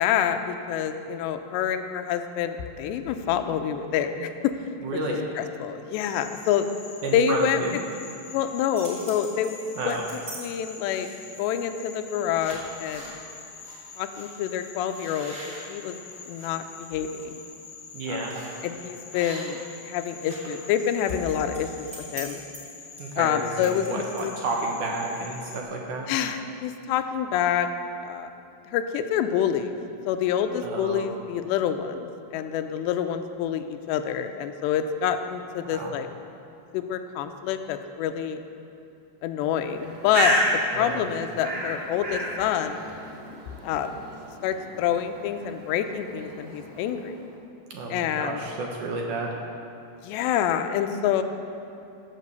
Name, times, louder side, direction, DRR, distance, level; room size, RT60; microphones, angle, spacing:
voice 1, 0.0-4.5 5.4-6.7 7.1-7.6 8.3-9.6 9.9-10.0 10.4-11.1 11.4-13.2 14.0-15.3 15.7-16.0 16.3-17.4 18.1-18.2 18.6-22.4 23.2-23.9 24.2-24.3 26.1-27.7 28.0-28.3 28.7-29.7 30.1-36.1 36.7-38.4 39.2-40.4 40.7-42.8 43.6-44.0 44.4-47.1 47.9-48.4 50.0-51.2, left 9 dB, 85° left, 8 dB, 2.8 m, -27 dB
voice 2, 4.8-5.2 7.0-7.8 9.8-10.2 17.9-18.3 23.0-26.1 30.6-31.1 35.7-35.9 40.7-41.0 47.7-49.4, right 2 dB, 70° right, 0 dB, 2.0 m, -31 dB
Frog, 6.1-25.6, left 5 dB, 70° left, 1.4 m, -45 dB
sound 1, 8.5-10.4 10.8-11.3 11.9-12.1 12.4-13.2 13.6-13.8 14.1-14.3 14.8-16.5 17.0-17.2 18.3-18.6 19.1-19.7 20.0-24.5, right 1 dB, 15° right, 2.9 m, -43 dB
Bird, 39.7-47.3, right 1 dB, 40° right, 1.7 m, -31 dB
16.0 x 7.5 x 6.9 m, 2.8 s
omnidirectional pair, 5.0 m